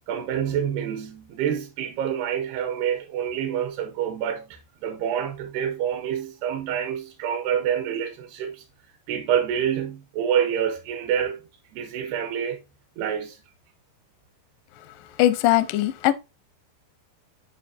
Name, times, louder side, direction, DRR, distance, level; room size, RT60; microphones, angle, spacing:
voice 1, 0.1-8.6 9.1-11.4 11.7-12.6 13.0-13.4, right 9 dB, 80° right, 2.9 m, -27 dB
voice 2, 15.2-16.1, left 14 dB, 85° left, 2.0 m, -20 dB
10.0 x 4.7 x 2.6 m
omnidirectional pair, 4.8 m